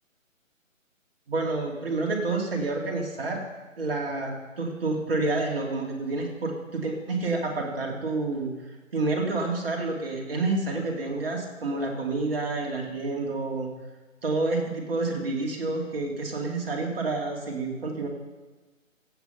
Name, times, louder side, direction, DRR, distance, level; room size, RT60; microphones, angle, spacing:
voice 1, 1.3-3.4 3.8-13.7 14.2-18.1, right 3 dB, 45° right, 1 dB, 2.4 m, -29 dB
15.0 x 7.3 x 5.6 m, 1.3 s
figure-of-eight pair, 150°, 40 cm